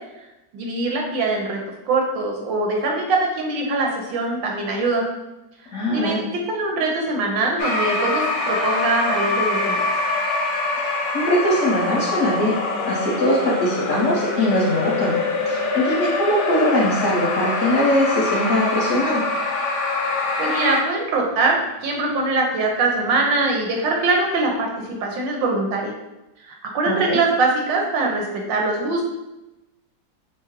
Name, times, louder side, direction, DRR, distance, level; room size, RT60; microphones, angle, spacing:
voice 1, 0.5-1.6 1.9-5.0 5.9-9.9 20.4-25.9 26.4-29.0, right 3 dB, 75° right, 0 dB, 1.5 m, -22 dB
voice 2, 5.7-6.2 10.8-12.6 12.8-15.2 15.5-19.2 26.9-27.2, equal, 50° left, -6 dB, 1.0 m, -21 dB
sound 1, 7.6-20.8, left 3 dB, 75° left, 0.6 m, -24 dB
4.7 x 2.1 x 4.6 m, 0.99 s
omnidirectional pair, 2.1 m